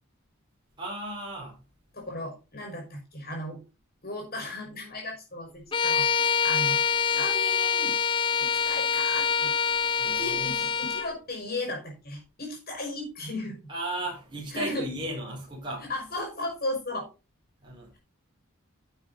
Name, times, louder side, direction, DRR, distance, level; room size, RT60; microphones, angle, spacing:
voice 1, 0.8-1.6 10.0-10.6 13.7-15.8 17.6-18.0, right 1 dB, 20° right, 4.8 m, -35 dB
voice 2, 1.9-3.6 4.0-6.8 7.1-7.9 8.4-9.5 10.0-13.6 14.5-14.8 15.9-17.1, left 2 dB, 45° left, 5.6 m, -35 dB
Bowed string instrument, 5.7-11.1, left 6 dB, 20° left, 0.5 m, -25 dB
11.0 x 8.2 x 4.0 m
head